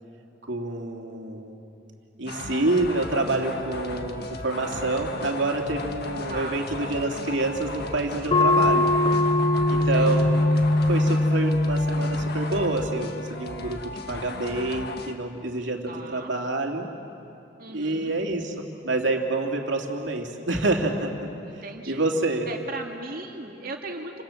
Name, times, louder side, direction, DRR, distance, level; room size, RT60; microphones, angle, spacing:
voice 1, 0.4-1.6 2.2-8.9 9.7-10.5 10.9-13.8 14.1-16.9 17.7-22.5, right 2 dB, 70° right, 2 dB, 2.8 m, -27 dB
sound 1, 2.3-15.1, left 3 dB, 60° left, 1.7 m, -36 dB
voice 2, 4.6-5.0 6.3-6.6 9.9-10.2 15.9-16.3 17.6-18.1 21.4-22.1 22.5-24.2, right 3 dB, 50° right, 2 dB, 2.5 m, -37 dB
sound 2, 8.3-13.4, left 2 dB, 30° left, 0.6 m, -22 dB
29.5 x 25.5 x 7.3 m, 2.9 s
head